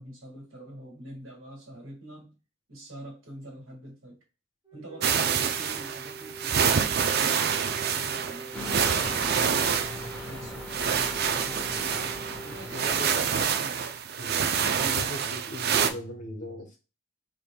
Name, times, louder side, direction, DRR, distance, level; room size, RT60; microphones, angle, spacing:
voice 1, 0.0-2.4 2.7-4.2 4.7-9.6 10.3-11.9 12.4-13.8, right 1 dB, 70° right, 1.7 m, -45 dB
Wind instrument woodwind instrument, 4.6-13.3, right 2 dB, 20° right, 1.1 m, -45 dB
sound 1, 5.0-15.9, right 7 dB, 50° right, 0.4 m, -27 dB
sound 2, 8.5-13.6, left 1 dB, 5° left, 1.0 m, -40 dB
voice 2, 12.7-13.3 14.2-14.3 14.6-16.8, left 1 dB, 35° left, 1.1 m, -39 dB
5.2 x 3.0 x 2.2 m
head